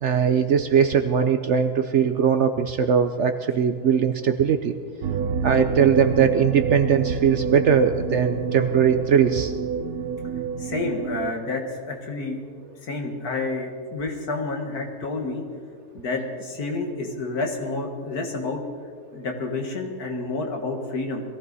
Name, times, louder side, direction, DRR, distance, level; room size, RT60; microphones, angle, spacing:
voice 1, 0.0-4.7 5.4-9.5, right 7 dB, 65° right, 8 dB, 0.8 m, -20 dB
sound 1, 5.0-11.3, right 5 dB, 85° right, 1.3 m, -28 dB
voice 2, 10.6-12.4 12.8-15.4 15.9-18.6 19.1-21.2, left 3 dB, 70° left, 2 dB, 2.3 m, -29 dB
21.5 x 15.0 x 4.1 m, 2.1 s
omnidirectional pair, 1.7 m